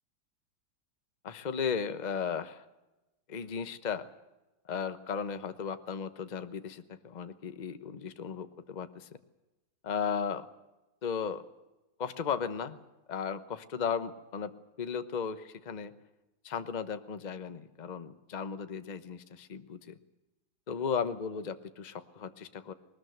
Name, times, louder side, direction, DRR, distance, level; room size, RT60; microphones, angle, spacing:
voice 1, 1.2-2.6 3.3-4.1 4.7-9.1 9.8-10.5 11.0-11.4 12.0-12.8 13.1-14.5 14.8-15.9 16.4-20.0 20.7-22.7, left 6 dB, 30° left, 10 dB, 0.9 m, -35 dB
20.5 x 20.0 x 7.9 m, 1.0 s
omnidirectional pair, 2.1 m